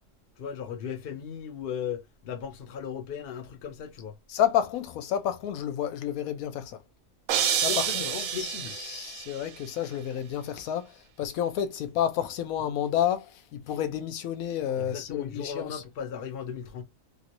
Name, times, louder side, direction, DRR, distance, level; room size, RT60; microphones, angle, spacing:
voice 1, 0.4-4.2 7.7-8.8 14.8-16.8, left 7 dB, 55° left, 0.8 m, -37 dB
voice 2, 4.3-6.8 7.6-15.8, left 10 dB, 85° left, 1.0 m, -30 dB
sound 1, 7.3-9.4, right 8 dB, 70° right, 0.9 m, -28 dB
3.0 x 2.5 x 2.8 m
omnidirectional pair, 1.4 m